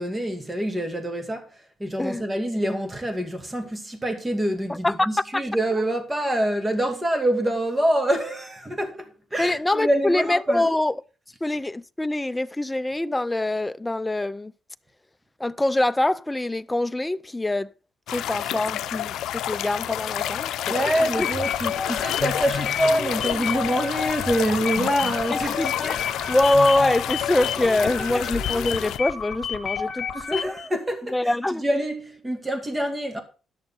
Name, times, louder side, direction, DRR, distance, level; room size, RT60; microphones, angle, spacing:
voice 1, 0.0-1.5 1.8-10.7 20.7-25.8 28.1-28.2 30.1-31.2 31.5-33.2, right 1 dB, 15° right, 2.3 m, -26 dB
voice 2, 4.7-5.1 5.3-5.4 5.8-5.9 9.4-10.9 11.4-14.5 15.4-17.7 18.1-21.3 25.3-26.0 26.3-30.6 31.1-31.7, left 1 dB, 15° left, 0.5 m, -24 dB
sound 1, 18.1-29.0, left 12 dB, 80° left, 0.6 m, -29 dB
sound 2, 21.1-30.7, left 7 dB, 55° left, 1.8 m, -31 dB
11.5 x 6.6 x 5.6 m
cardioid pair, 90°, 0 cm